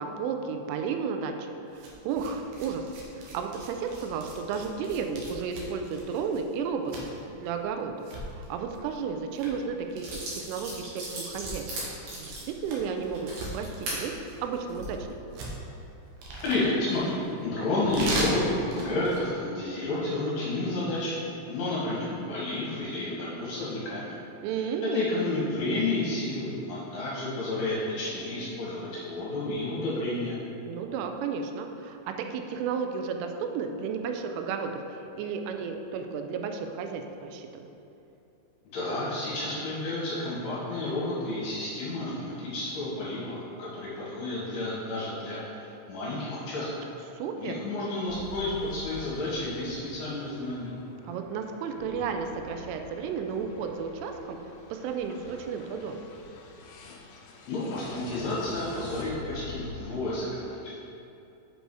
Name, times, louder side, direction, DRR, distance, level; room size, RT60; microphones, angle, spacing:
voice 1, 0.0-2.8 3.1-6.9 7.4-7.9 8.4-11.7 12.2-14.1 14.4-15.1 24.4-25.1 30.6-37.7 47.1-47.6 51.0-54.4 54.7-56.0, right 6 dB, 90° right, 5 dB, 3.1 m, -33 dB
sound 1, 1.7-19.3, right 1 dB, 75° right, 2.0 m, -40 dB
sound 2, 9.5-9.6 10.0-14.0 14.6-14.8, right 2 dB, 55° right, 3.4 m, -37 dB
voice 2, 16.4-21.2 21.5-24.2 24.5-30.4 38.7-46.7 47.4-50.7 57.5-60.8, left 2 dB, 60° left, -7 dB, 3.1 m, -31 dB
sound 3, 48.1-59.8, left 4 dB, 85° left, 2.7 m, -46 dB
7.7 x 5.3 x 4.8 m, 2.8 s
omnidirectional pair, 5.5 m